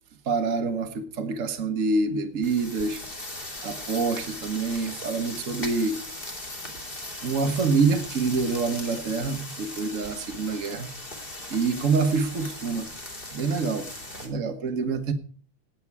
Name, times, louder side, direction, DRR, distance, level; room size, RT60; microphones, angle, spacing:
voice 1, 0.2-3.0 3.6-6.0 7.2-10.9 11.5-12.9 13.3-13.9 14.2-15.1, right 4 dB, 60° right, 7 dB, 0.8 m, -26 dB
sound 1, 2.4-14.3, left 1 dB, 20° left, 2.4 m, -38 dB
15.5 x 9.7 x 4.7 m, 0.42 s
omnidirectional pair, 3.4 m